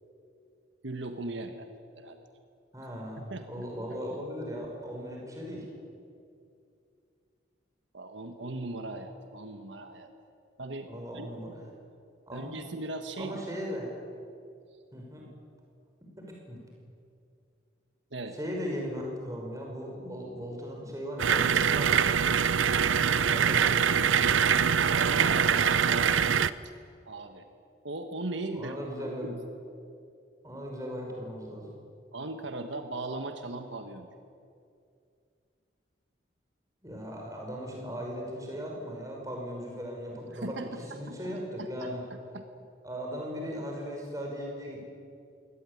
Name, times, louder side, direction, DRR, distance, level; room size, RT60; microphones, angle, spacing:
voice 1, 0.8-1.7 1.9-2.3 3.3-3.6 7.9-10.1 10.6-11.3 12.3-13.4 18.1-18.3 24.8-26.3 27.0-27.5 27.8-28.8 29.0-29.4 32.1-34.1 40.3-40.7 41.1-41.9 42.3-42.5, right 2 dB, 75° right, 6 dB, 1.5 m, -38 dB
voice 2, 2.7-5.7 10.9-11.5 12.3-12.5 13.2-13.9 14.9-15.3 16.2-16.6 18.3-22.1 23.3-24.0 28.5-29.4 30.4-31.7 36.8-42.0 42.8-44.8, equal, 15° right, -1 dB, 5.8 m, -38 dB
sound 1, 21.2-26.5, right 7 dB, 90° right, 0.7 m, -24 dB
23.0 x 18.5 x 9.9 m, 2.4 s
head